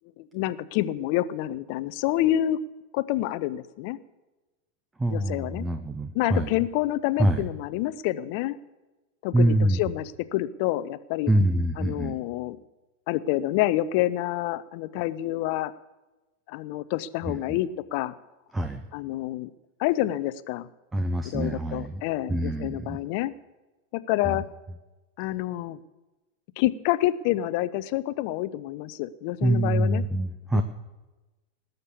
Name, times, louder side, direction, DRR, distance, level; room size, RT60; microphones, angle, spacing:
voice 1, 0.2-2.6 2.9-4.0 5.1-5.6 6.1-8.6 9.2-11.3 11.8-12.6 13.1-15.7 16.5-18.1 18.9-19.5 19.8-20.7 21.2-23.3 23.9-24.5 25.2-25.8 26.6-30.0 30.5-30.6, left 14 dB, 45° left, 17 dB, 0.6 m, -28 dB
voice 2, 5.0-6.5 7.2-7.4 9.3-9.8 11.3-12.2 17.3-17.6 18.5-18.8 20.9-22.0 22.3-23.0 24.3-24.4 29.4-30.6, right 1 dB, 10° right, 8 dB, 0.8 m, -25 dB
19.0 x 6.6 x 8.4 m, 1.1 s
figure-of-eight pair, 90°, 0 cm